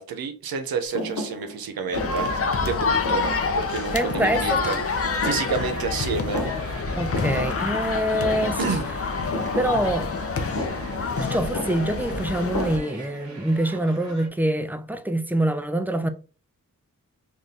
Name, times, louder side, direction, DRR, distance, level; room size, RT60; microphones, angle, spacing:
voice 1, 0.0-2.3 2.6-3.2 3.6-6.4 8.6-8.9, right 5 dB, 90° right, 0.5 m, -29 dB
Thump thud, 0.9-6.0 6.2-6.9 7.1-13.3, left 1 dB, 65° left, 1.1 m, -34 dB
sound 1, 1.9-12.8, left 4 dB, 40° left, 0.5 m, -27 dB
sound 2, 3.5-14.3, right 3 dB, 55° right, 1.0 m, -41 dB
voice 2, 3.9-4.8 7.0-8.8 9.5-10.1 11.2-16.1, right 1 dB, 5° right, 0.3 m, -25 dB
2.6 x 2.3 x 3.5 m
cardioid pair, 45°, 35 cm